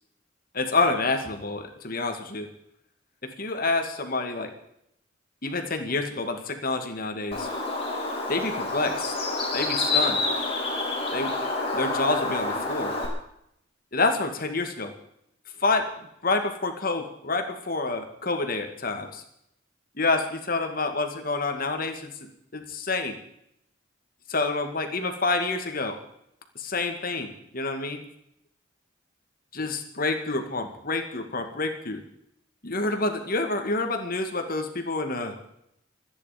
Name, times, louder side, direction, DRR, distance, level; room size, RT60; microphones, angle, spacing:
voice 1, 0.5-2.5 3.2-4.5 5.4-7.5 8.3-9.1 9.5-10.2 11.1-11.3 11.7-13.0 13.9-14.9 15.6-15.9 16.2-19.2 20.0-22.1 22.5-23.2 24.3-26.0 26.6-28.0 29.5-32.0 32.6-35.3, left 3 dB, 45° left, 6 dB, 2.2 m, -28 dB
Bird, 7.3-13.1, left 2 dB, 30° left, 5.1 m, -28 dB
26.5 x 10.0 x 5.2 m, 0.74 s
head